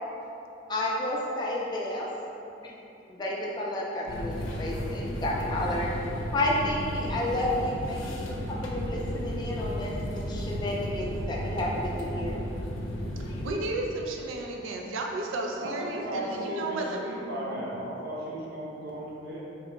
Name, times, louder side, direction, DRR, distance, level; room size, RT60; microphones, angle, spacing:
voice 1, 0.7-2.1 2.6-2.8 3.1-5.9 6.3-8.0 8.5-12.5, left 1 dB, 20° left, -3 dB, 0.4 m, -31 dB
sound 1, 4.1-13.5, equal, 85° left, 0.5 m, -34 dB
voice 2, 13.4-17.6, right 2 dB, 85° right, 1 dB, 0.4 m, -33 dB
voice 3, 15.6-19.4, right 1 dB, 55° right, -5 dB, 0.7 m, -35 dB
3.0 x 2.8 x 4.3 m, 2.9 s
head